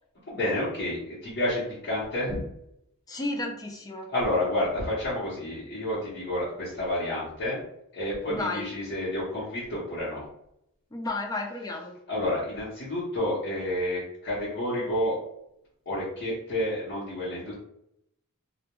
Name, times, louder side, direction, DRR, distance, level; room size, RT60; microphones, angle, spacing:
voice 1, 0.3-2.4 4.1-7.6 7.9-10.2 12.1-15.1 15.9-17.5, left 1 dB, 50° left, -11 dB, 0.8 m, -29 dB
voice 2, 3.1-4.1 8.3-8.7 10.9-12.0, left 2 dB, 15° left, 2 dB, 0.3 m, -32 dB
2.2 x 2.1 x 2.9 m, 0.76 s
head